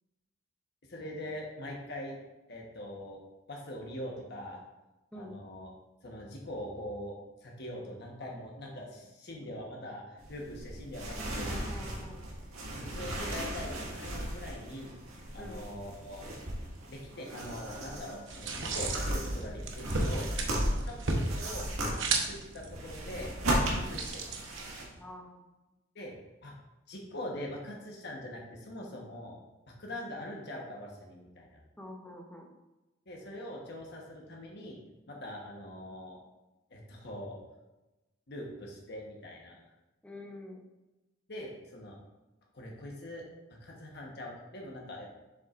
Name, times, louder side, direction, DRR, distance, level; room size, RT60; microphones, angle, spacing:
voice 1, 0.9-2.2 2.5-3.2 3.5-4.6 5.1-5.7 6.0-11.5 12.8-14.9 15.3-16.2 16.9-20.2 20.8-21.0 21.3-21.7 22.0-23.3 23.7-24.3 25.9-26.1 26.4-26.5 26.9-29.3 29.7-31.6 33.1-34.8 35.1-36.2 36.7-37.4 38.3-39.6 41.3-42.0 42.5-43.2 43.6-45.1, left 1 dB, 50° left, -1 dB, 1.2 m, -42 dB
sound 1, 10.2-24.8, right 1 dB, 80° right, 1.8 m, -36 dB
voice 2, 11.2-12.2 15.4-15.6 20.1-20.3 23.8-23.9 25.0-25.4 31.8-32.6 40.0-40.6, left 1 dB, 5° left, 1 dB, 0.8 m, -46 dB
sound 2, 18.3-25.0, right 3 dB, 60° right, 1.0 m, -35 dB
7.2 x 7.1 x 2.5 m, 1.0 s
head